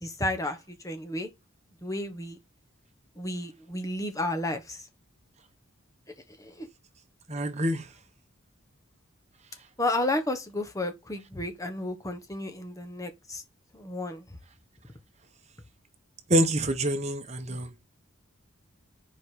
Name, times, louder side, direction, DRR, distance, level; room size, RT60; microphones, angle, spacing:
voice 1, 0.0-1.3 1.8-2.4 3.2-4.9 6.4-6.7 9.8-13.4 13.7-14.3, left 1 dB, 15° left, 1.2 m, -32 dB
voice 2, 7.3-7.8 16.3-17.7, right 1 dB, 30° right, 1.1 m, -26 dB
5.2 x 5.1 x 6.3 m
head